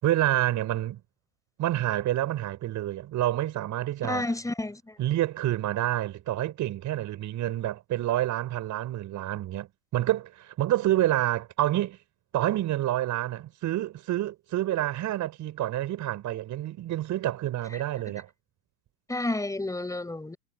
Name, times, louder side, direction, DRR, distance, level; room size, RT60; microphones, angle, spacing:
voice 1, 0.0-1.0 1.6-4.2 5.0-9.7 9.9-12.0 12.3-18.3, right 14 dB, 35° right, 4.6 m, -28 dB
voice 2, 4.0-5.0 19.1-20.4, left 2 dB, 5° left, 5.3 m, -31 dB
hypercardioid pair, 100°, 48 cm